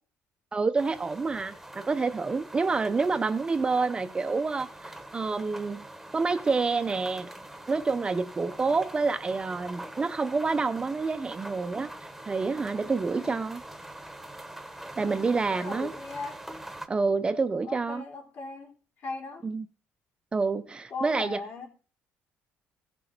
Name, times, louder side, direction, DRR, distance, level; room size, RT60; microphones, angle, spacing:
voice 1, 0.5-5.8 6.1-7.3 7.7-11.9 12.3-13.6 15.0-15.9 16.9-18.0 19.4-19.7 20.3-21.4, right 4 dB, 20° right, 0.6 m, -28 dB
sound 1, 0.8-16.9, right 1 dB, 5° right, 1.1 m, -44 dB
voice 2, 13.1-13.5 15.0-16.4 17.6-19.4 20.9-21.7, left 3 dB, 55° left, 3.7 m, -39 dB
16.0 x 6.5 x 4.4 m
cardioid pair, 135°, 5 cm